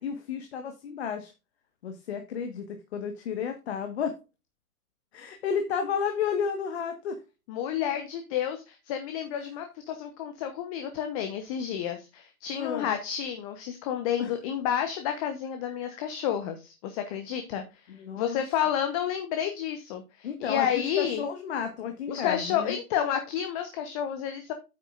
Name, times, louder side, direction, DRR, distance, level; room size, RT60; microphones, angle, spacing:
voice 1, 0.0-1.3 1.8-4.2 5.1-7.2 12.5-12.9 14.2-14.3 17.9-18.4 20.2-22.8, left 7 dB, 45° left, 6 dB, 1.5 m, -32 dB
voice 2, 7.5-17.6 18.2-21.2 22.1-24.5, left 9 dB, 25° left, 7 dB, 1.0 m, -30 dB
9.2 x 8.9 x 2.5 m, 0.28 s
figure-of-eight pair, 125°, 46 cm